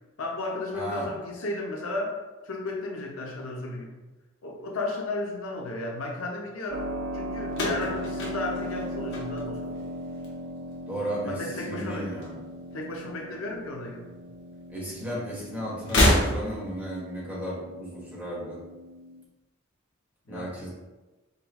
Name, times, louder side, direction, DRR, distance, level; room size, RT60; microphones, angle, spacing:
voice 1, 0.2-2.1 2.4-4.0 4.4-6.9 7.1-9.8 11.3-12.1 12.7-14.1 20.3-20.7, left 2 dB, 85° left, 0 dB, 0.7 m, -34 dB
voice 2, 0.7-1.1 10.9-12.4 14.7-18.6 20.3-20.7, equal, 10° right, -7 dB, 1.3 m, -34 dB
Keyboard (musical), 6.7-19.2, equal, 75° right, 0.5 m, -38 dB
sound 1, 7.5-9.8 10.1-10.7 11.8-12.8 13.0-13.2 14.3-14.4 15.8-16.8, left 1 dB, 60° left, 1.0 m, -27 dB
5.2 x 2.3 x 3.0 m, 1.1 s
head